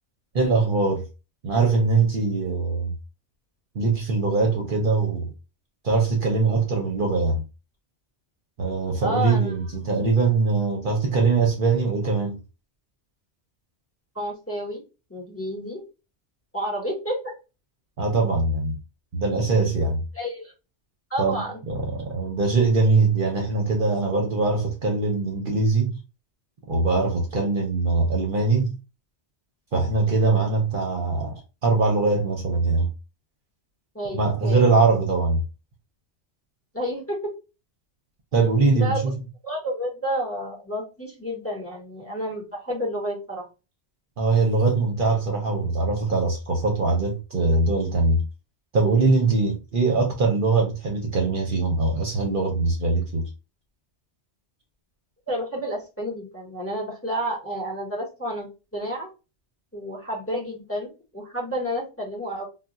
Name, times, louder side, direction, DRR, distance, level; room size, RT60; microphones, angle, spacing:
voice 1, 0.3-1.0 1.4-2.9 3.7-5.3 5.8-7.4 8.6-12.4 18.0-18.8 19.1-20.0 21.2-21.4 21.7-26.0 26.7-28.7 29.7-32.9 34.1-35.4 38.3-39.2 44.2-48.2 48.7-53.3, right 3 dB, 55° right, 0.7 m, -22 dB
voice 2, 9.0-9.5 14.1-14.8 15.1-15.8 16.5-17.3 20.1-20.5 21.1-21.6 33.9-34.6 36.7-37.3 38.7-39.0 39.4-43.4 55.3-58.5 58.7-59.1 59.7-62.4, equal, 15° left, 0.9 m, -30 dB
2.3 x 2.2 x 3.9 m
omnidirectional pair, 1.1 m